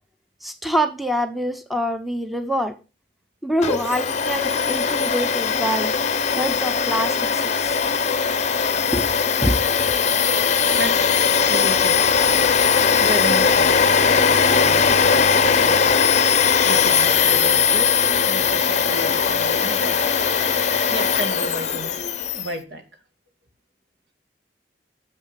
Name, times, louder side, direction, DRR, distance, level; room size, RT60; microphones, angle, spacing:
voice 1, 0.4-2.8 3.4-5.9 6.4-7.5 8.9-9.1 9.4-9.8, equal, ahead, 0.8 m, -25 dB
Domestic sounds home sounds, 3.6-22.5, left 6 dB, 40° left, 0.7 m, -19 dB
voice 2, 11.4-12.2 13.0-16.0 16.6-20.2 20.9-22.0 22.3-22.8, right 1 dB, 70° right, 2.3 m, -32 dB
7.3 x 6.6 x 5.8 m
head